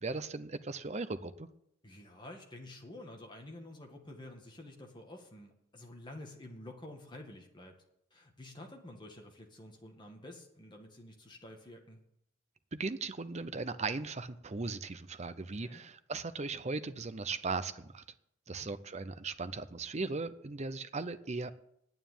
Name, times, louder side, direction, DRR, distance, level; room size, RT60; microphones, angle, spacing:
voice 1, 0.0-1.5 12.7-18.0 18.5-21.5, right 3 dB, 30° right, 12 dB, 0.6 m, -38 dB
voice 2, 1.8-7.8 8.1-12.0 15.6-15.8 18.5-18.7, left 1 dB, 20° left, 1 dB, 1.9 m, -50 dB
9.2 x 9.2 x 9.2 m, 0.76 s
head